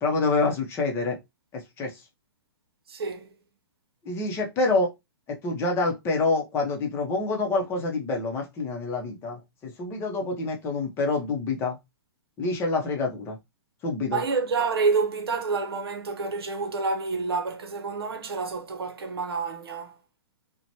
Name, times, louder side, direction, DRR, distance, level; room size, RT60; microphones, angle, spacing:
voice 1, 0.0-1.2 1.5-2.0 4.0-4.9 5.3-11.8 12.4-13.4 13.8-14.2, left 3 dB, 20° left, 0.7 m, -27 dB
voice 2, 2.9-3.3 14.1-19.9, right 4 dB, 80° right, 0.7 m, -28 dB
2.9 x 2.2 x 2.7 m
hypercardioid pair, 145°, 13 cm